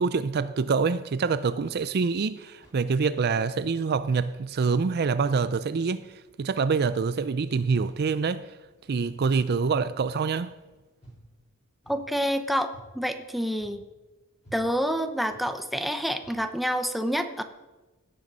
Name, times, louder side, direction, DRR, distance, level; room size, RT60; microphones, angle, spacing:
voice 1, 0.0-8.5 8.9-10.6, right 5 dB, 50° right, 0.4 m, -26 dB
sound 1, 2.6-3.1 4.0-4.4 5.0-5.4 6.3-6.6 7.7-8.1 9.2-9.6 11.0-11.3 11.8-12.2 12.7-13.0 13.6-14.0 14.4-14.7 15.3-15.5 16.1-16.5, right 1 dB, 35° left, 5.0 m, -53 dB
voice 2, 11.9-13.8 14.5-17.4, equal, ahead, 0.7 m, -28 dB
16.5 x 7.6 x 5.5 m
head